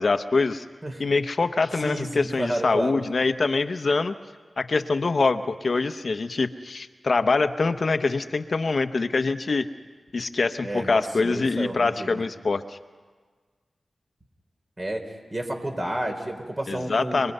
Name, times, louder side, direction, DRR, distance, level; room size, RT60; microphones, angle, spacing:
voice 1, 0.0-0.6 1.0-4.1 4.6-9.7 10.1-12.8 16.7-17.3, left 3 dB, 60° left, 10 dB, 0.8 m, -24 dB
voice 2, 1.8-3.0 10.6-12.2 14.8-15.0 15.3-17.3, right 1 dB, 35° right, 3 dB, 4.2 m, -31 dB
29.5 x 21.0 x 5.5 m, 1.5 s
cardioid pair, 50°, 0 cm